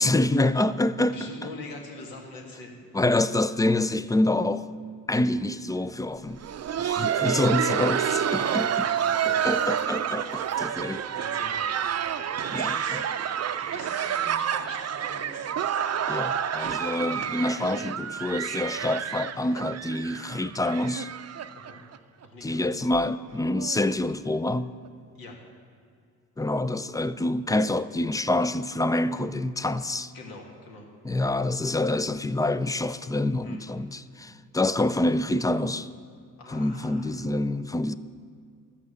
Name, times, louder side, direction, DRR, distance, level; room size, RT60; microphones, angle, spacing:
voice 1, 0.0-1.3 2.9-4.7 5.1-6.4 6.8-8.7 9.2-11.0 12.5-13.0 16.1-21.1 22.4-24.8 26.4-30.1 31.0-35.9 36.5-37.9, left 2 dB, 10° left, 0.3 m, -26 dB
voice 2, 1.1-2.7 8.3-9.8 10.2-10.3 11.2-11.7 12.2-13.1 13.6-15.6 16.1-16.4 21.6-21.8 22.2-22.7 25.2-25.4 30.1-30.9 33.4-33.7 36.4-37.2, left 2 dB, 80° left, 2.0 m, -44 dB
Laughter, 6.3-22.0 22.2-22.3 22.9-23.0 23.6-23.8 24.8-24.9, right 9 dB, 45° right, 0.6 m, -29 dB
13.0 x 5.8 x 7.8 m
cardioid pair, 70°, 34 cm